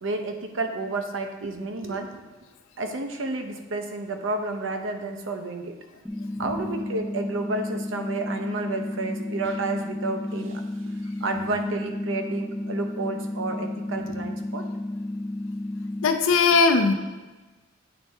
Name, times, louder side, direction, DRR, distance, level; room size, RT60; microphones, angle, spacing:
voice 1, 0.0-2.2 2.8-5.7 6.4-10.6 11.2-14.7, right 2 dB, 70° right, 5 dB, 0.7 m, -30 dB
sound 1, 6.1-16.1, left 1 dB, 5° left, 0.6 m, -32 dB
voice 2, 16.0-16.9, left 4 dB, 90° left, 5 dB, 0.6 m, -19 dB
8.8 x 4.2 x 3.4 m, 1.2 s
head